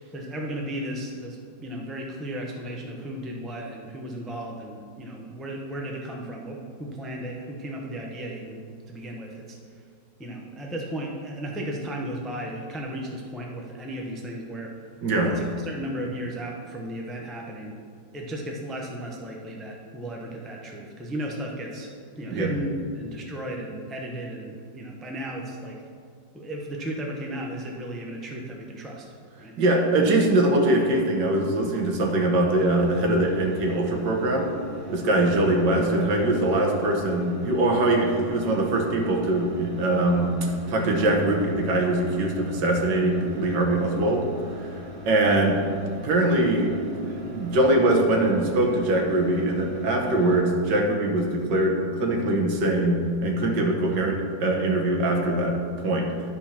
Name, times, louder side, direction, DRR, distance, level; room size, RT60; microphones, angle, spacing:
voice 1, 0.1-9.6 10.2-14.7 15.2-17.8 18.1-25.8 26.3-29.1 29.4-29.6, right 1 dB, ahead, -1 dB, 0.3 m, -35 dB
voice 2, 29.6-34.5 34.9-44.3 44.5-44.8 45.1-45.6 46.0-56.1, right 1 dB, 70° right, 1 dB, 1.8 m, -22 dB
sound 1, 32.5-50.4, left 2 dB, 40° right, 1.9 m, -42 dB
11.5 x 4.5 x 5.8 m, 2.2 s
omnidirectional pair, 2.0 m